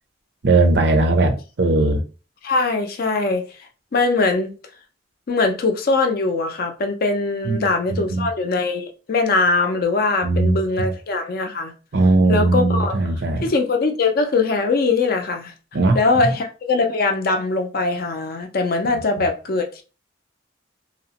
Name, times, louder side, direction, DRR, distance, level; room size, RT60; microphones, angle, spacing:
voice 1, 0.4-2.0 7.4-8.3 10.2-10.9 11.9-13.5 15.7-16.2 18.9-19.3, right 2 dB, 60° right, 0.5 m, -19 dB
voice 2, 2.4-3.4 3.9-4.5 5.3-11.7 12.3-13.0 13.4-15.5 15.9-19.8, left 3 dB, 50° left, 0.4 m, -21 dB
2.8 x 2.0 x 2.8 m
head